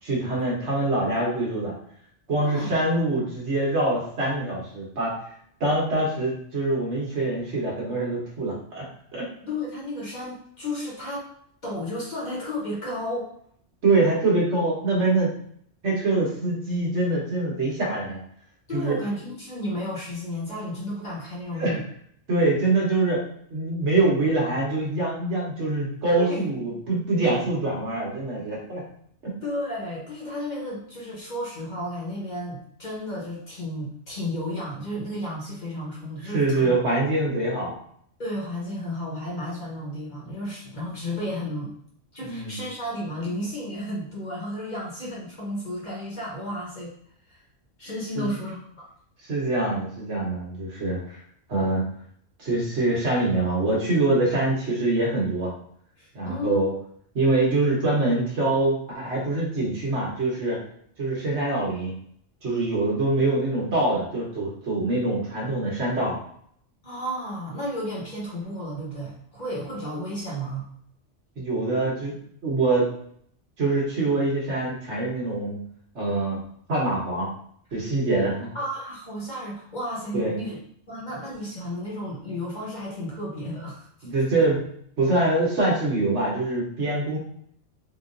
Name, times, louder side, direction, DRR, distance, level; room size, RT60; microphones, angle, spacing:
voice 1, 0.0-1.7 2.3-5.2 5.6-8.8 9.1-9.3 13.8-15.3 15.8-18.2 18.7-19.0 21.5-21.8 22.3-23.2 23.5-28.8 29.2-29.3 36.2-37.7 42.2-42.6 48.1-48.3 49.2-51.2 51.5-51.8 52.4-55.5 56.1-56.7 57.1-60.6 61.0-61.9 62.4-66.2 71.4-72.1 72.4-72.9 73.6-75.6 75.9-76.4 76.7-77.3 77.7-78.5 80.1-80.3 84.0-84.6 85.0-87.2, right 2 dB, 65° right, -3 dB, 1.5 m, -24 dB
voice 2, 2.4-2.7 9.4-11.2 11.6-13.3 18.7-21.8 26.2-26.8 29.4-36.7 38.2-41.7 42.1-46.9 47.3-47.4 47.8-48.9 56.0-56.6 66.8-70.7 78.5-80.6 80.9-84.1, left 1 dB, 40° left, -5 dB, 1.1 m, -33 dB
3.8 x 3.0 x 2.5 m, 0.64 s
omnidirectional pair, 1.3 m